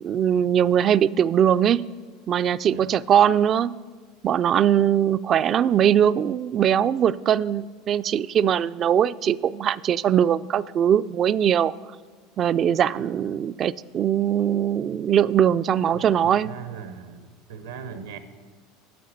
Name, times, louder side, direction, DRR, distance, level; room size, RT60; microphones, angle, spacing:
voice 1, 0.0-1.8 2.3-3.7 4.2-11.7 12.4-16.5, right 9 dB, 40° right, 16 dB, 0.3 m, -21 dB
voice 2, 2.7-3.0 15.9-18.2, right 7 dB, 90° right, 9 dB, 1.0 m, -39 dB
9.3 x 7.1 x 7.7 m, 1.5 s
hypercardioid pair, 90°, 0 cm